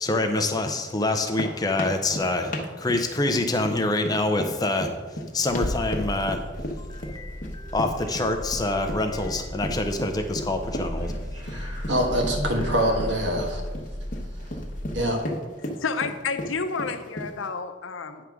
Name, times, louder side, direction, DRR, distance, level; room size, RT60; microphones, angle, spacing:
voice 1, 0.0-4.9 5.3-6.4 6.9-11.1, left 2 dB, 20° left, 5 dB, 0.5 m, -26 dB
sound 1, 1.1-17.5, equal, 40° left, 1.0 m, -35 dB
sound 2, 5.5-15.2, left 1 dB, 25° right, 1.7 m, -35 dB
voice 2, 11.4-13.6 14.9-15.2, equal, 65° right, 2 dB, 1.4 m, -25 dB
voice 3, 15.8-18.2, left 5 dB, 80° left, 8 dB, 0.6 m, -30 dB
9.4 x 3.5 x 6.1 m, 1.3 s
head